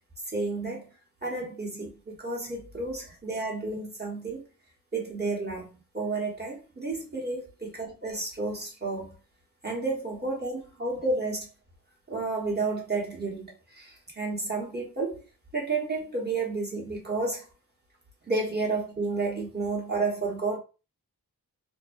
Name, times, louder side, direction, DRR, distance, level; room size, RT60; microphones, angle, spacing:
voice 1, 0.3-0.9 1.2-4.4 4.9-9.2 9.6-11.5 12.1-15.2 15.5-17.5 18.3-20.6, right 3 dB, 25° right, 1.0 m, -31 dB
2.6 x 2.1 x 2.5 m
wide cardioid pair, 70°, 37 cm